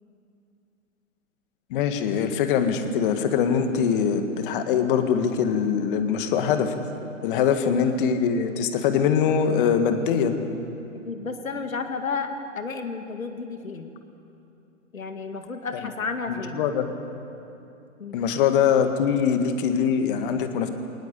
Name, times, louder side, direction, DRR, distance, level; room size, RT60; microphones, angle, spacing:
voice 1, 1.7-6.7 7.2-10.4 16.6-16.9 18.1-20.7, left 7 dB, 40° left, 7 dB, 1.8 m, -22 dB
voice 2, 7.3-7.6 10.9-13.9 14.9-16.6 18.0-18.2, left 4 dB, 80° left, 6 dB, 2.3 m, -32 dB
20.5 x 19.5 x 8.5 m, 2.7 s
hypercardioid pair, 125°, 40 cm